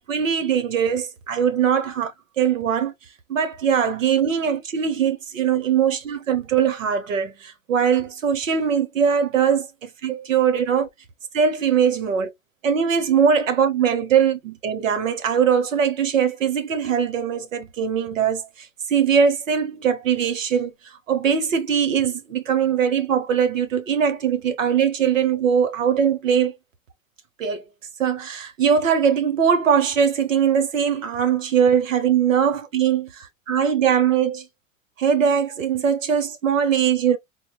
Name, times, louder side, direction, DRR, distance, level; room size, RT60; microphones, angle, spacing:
voice 1, 0.0-2.9 3.3-10.9 11.3-12.3 12.6-20.7 21.1-26.5 27.4-27.6 28.0-34.4 35.0-37.2, right 7 dB, 75° right, 1.0 m, -21 dB
4.0 x 2.8 x 2.3 m
figure-of-eight pair, 85°, 40 cm